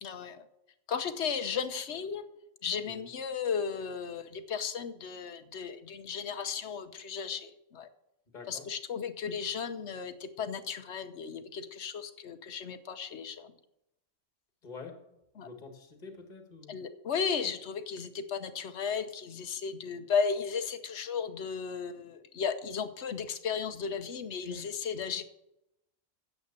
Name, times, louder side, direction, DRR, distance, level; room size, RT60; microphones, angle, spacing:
voice 1, 0.0-0.5 0.9-2.2 2.6-7.9 8.5-13.5 15.4-15.5 16.7-25.2, left 6 dB, 55° left, 10 dB, 1.1 m, -35 dB
voice 2, 8.3-8.7 14.6-16.8, left 4 dB, 35° left, 5 dB, 1.7 m, -47 dB
9.5 x 7.8 x 6.7 m, 0.87 s
omnidirectional pair, 1.5 m